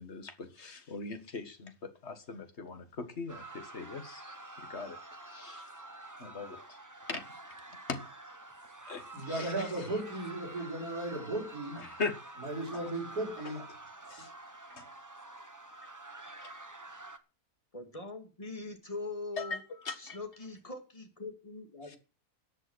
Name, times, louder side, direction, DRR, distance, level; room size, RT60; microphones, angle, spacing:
voice 1, 0.0-5.0 5.3-5.7 6.2-6.8 7.1-7.2 7.9-8.0 8.8-9.5 11.8-12.1 14.1-14.3 14.7-14.9 16.3-16.5 19.4-19.6 19.8-20.2 21.9-22.0, left 4 dB, 45° left, 1.9 m, -40 dB
sound 1, 3.3-17.2, right 2 dB, 15° right, 0.9 m, -48 dB
voice 2, 9.1-11.9 12.4-13.7, right 2 dB, 85° right, 4.9 m, -36 dB
voice 3, 17.7-19.6 20.0-22.0, left 3 dB, 20° left, 2.5 m, -42 dB
14.0 x 7.9 x 6.2 m
omnidirectional pair, 1.6 m